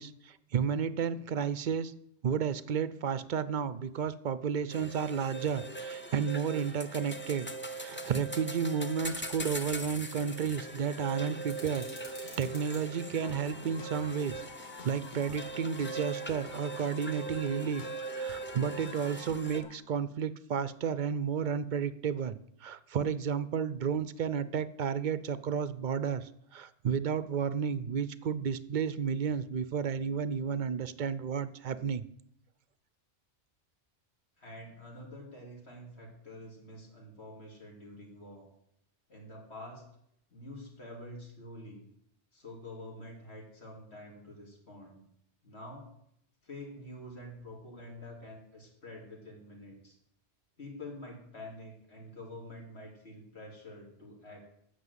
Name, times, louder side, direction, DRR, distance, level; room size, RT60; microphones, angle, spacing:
voice 1, 0.0-1.9 2.2-11.9 12.1-14.5 14.8-17.8 18.1-32.1, right 7 dB, 55° right, 15 dB, 0.6 m, -32 dB
sound 1, 4.7-19.6, right 2 dB, 10° left, 0.6 m, -41 dB
sound 2, 11.5-12.8, left 1 dB, 85° left, 3.5 m, -49 dB
sound 3, 13.2-19.8, left 6 dB, 45° left, 0.9 m, -49 dB
voice 2, 34.4-38.5 39.1-39.8 40.3-41.8 42.3-45.0 45.4-45.9 46.4-50.0 50.6-54.4, left 1 dB, 65° left, -1 dB, 3.1 m, -47 dB
9.4 x 6.3 x 7.9 m, 0.74 s
omnidirectional pair, 1.2 m